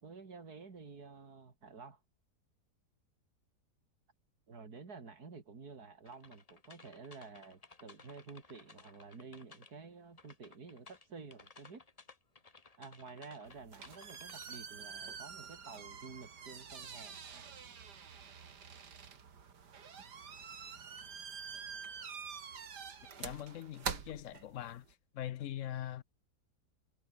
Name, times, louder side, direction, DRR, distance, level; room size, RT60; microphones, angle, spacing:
voice 1, 0.0-2.0 4.5-11.8 12.8-17.4, right 4 dB, 65° right, 3.3 m, -51 dB
sound 1, 6.1-9.9 10.2-14.6, left 3 dB, 25° left, 1.3 m, -58 dB
sound 2, 13.5-24.9, right 6 dB, 80° right, 2.5 m, -46 dB
voice 2, 23.2-24.9 25.1-26.0, left 12 dB, 65° left, 0.8 m, -42 dB
omnidirectional pair, 1.8 m